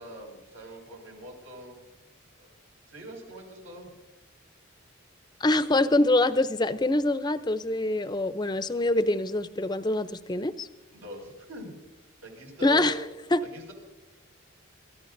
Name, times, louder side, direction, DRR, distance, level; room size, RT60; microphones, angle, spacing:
voice 1, 0.0-1.8 2.4-2.5 2.9-3.9 10.9-11.7 12.2-13.0 13.4-13.7, right 1 dB, 80° right, 0 dB, 5.8 m, -43 dB
voice 2, 5.4-10.7 12.6-13.0 13.3-13.5, left 2 dB, 20° left, 13 dB, 0.5 m, -25 dB
27.5 x 14.0 x 2.6 m, 1.1 s
head